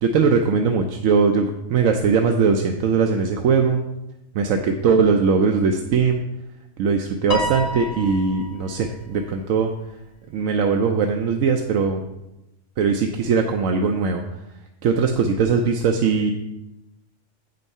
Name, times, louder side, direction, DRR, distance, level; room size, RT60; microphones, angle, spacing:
voice 1, 0.0-3.8 4.3-6.2 6.8-9.7 10.3-12.0 12.8-14.2 14.8-16.3, right 5 dB, 80° right, 4 dB, 1.0 m, -20 dB
Piano, 7.3-8.8, equal, 40° left, 0.6 m, -29 dB
8.0 x 5.4 x 5.4 m, 0.93 s
omnidirectional pair, 1.4 m